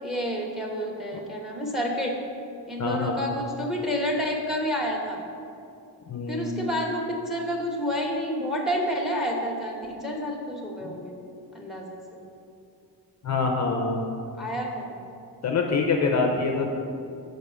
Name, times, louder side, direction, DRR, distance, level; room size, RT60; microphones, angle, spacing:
voice 1, 0.0-2.2 2.7-5.2 6.3-11.1 11.5-12.2 14.4-14.9, equal, ahead, 0 dB, 1.1 m, -29 dB
voice 2, 2.8-3.2 6.1-6.7 10.8-10.9 13.2-14.0 15.4-16.7, left 4 dB, 40° left, 3 dB, 0.7 m, -25 dB
6.6 x 4.9 x 6.8 m, 2.5 s
cardioid pair, 150°, 41 cm